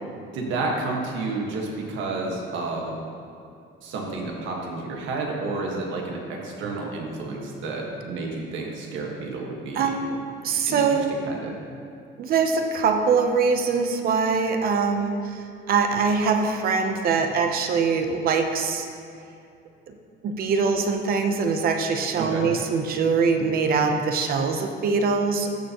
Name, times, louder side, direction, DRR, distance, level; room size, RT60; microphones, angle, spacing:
voice 1, 0.3-2.9 3.8-9.9 10.6-11.6 22.2-22.5, right 3 dB, 65° right, 0 dB, 1.6 m, -30 dB
voice 2, 9.7-10.2 10.4-11.2 12.2-18.9 19.9-20.0 20.2-25.5, right 5 dB, 45° right, 5 dB, 0.8 m, -23 dB
14.0 x 7.0 x 3.0 m, 2.5 s
cardioid pair, 175°, 21 cm